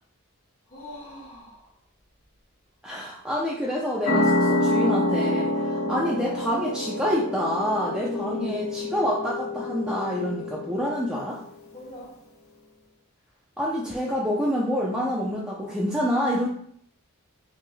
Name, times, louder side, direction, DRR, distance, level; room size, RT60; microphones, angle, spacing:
voice 1, 0.7-1.7 5.7-6.0 8.0-8.6 11.7-12.1, right 1 dB, 30° left, -5 dB, 1.5 m, -40 dB
voice 2, 2.8-11.4 13.6-16.5, equal, 5° right, -5 dB, 0.5 m, -27 dB
sound 1, 4.0-11.3, left 1 dB, 65° left, 1.0 m, -27 dB
5.7 x 3.6 x 2.2 m, 0.64 s
head